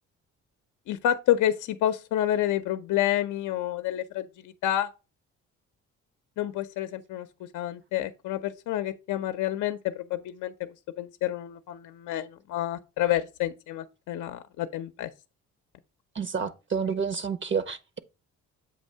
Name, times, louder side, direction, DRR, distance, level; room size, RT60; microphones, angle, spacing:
voice 1, 0.9-4.9 6.4-7.3 7.5-10.7 11.0-15.1, left 12 dB, 80° left, 0.5 m, -29 dB
voice 2, 16.1-18.0, right 6 dB, 40° right, 0.6 m, -29 dB
7.7 x 2.7 x 5.3 m
cardioid pair, 90°, 30 cm